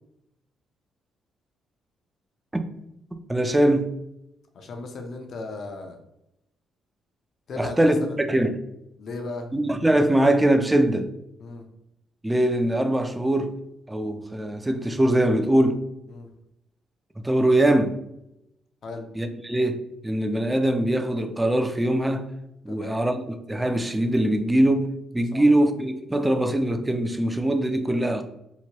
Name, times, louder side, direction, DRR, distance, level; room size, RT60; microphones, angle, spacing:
voice 1, 3.3-3.9 7.6-8.6 9.5-11.1 12.2-13.6 13.9-15.8 17.2-18.0 19.2-22.3 22.6-28.2, right 1 dB, 10° right, 0.3 m, -22 dB
voice 2, 4.5-6.0 7.5-8.2 9.0-9.5 11.4-11.7 16.1-16.3 18.8-19.1 22.7-23.0 25.3-25.4, left 3 dB, 55° left, 0.5 m, -36 dB
2.9 x 2.2 x 2.8 m
cardioid pair, 90°, 0 cm